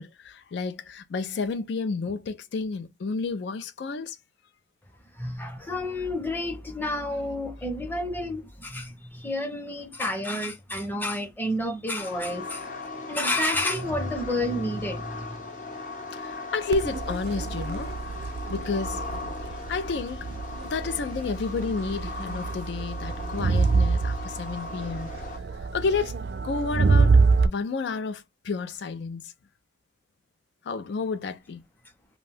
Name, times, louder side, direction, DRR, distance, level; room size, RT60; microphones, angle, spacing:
voice 1, 0.0-4.2 14.5-14.6 16.1-18.0 18.5-19.0 19.4-20.3 20.6-25.1 25.6-26.2 26.4-27.2 27.4-29.3 30.6-31.6, left 4 dB, 85° left, 0.4 m, -31 dB
voice 2, 5.2-12.6 13.1-15.4, left 1 dB, 10° left, 0.6 m, -30 dB
sound 1, 12.0-25.4, left 3 dB, 45° left, 0.7 m, -38 dB
Crowd, 16.7-27.5, right 4 dB, 70° right, 0.4 m, -26 dB
2.6 x 2.2 x 3.3 m
head